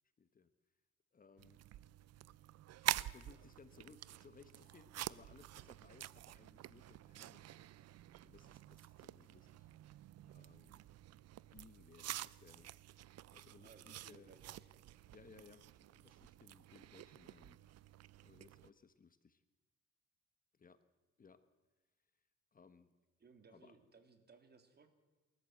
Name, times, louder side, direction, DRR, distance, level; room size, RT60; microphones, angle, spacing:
voice 1, 0.2-0.5 1.1-1.6 2.8-7.6 8.2-10.8 11.5-12.7 13.3-14.3 15.1-17.8 18.2-19.4 20.5-20.8 21.2-21.4 22.5-22.9 23.5-23.8, left 5 dB, 30° left, 11 dB, 1.2 m, -63 dB
sound 1, 1.4-18.7, right 14 dB, 60° right, 0.6 m, -48 dB
voice 2, 13.6-15.0 23.2-24.9, right 4 dB, 35° right, 7 dB, 2.9 m, -64 dB
28.0 x 13.5 x 7.9 m, 1.2 s
cardioid pair, 110°, 29 cm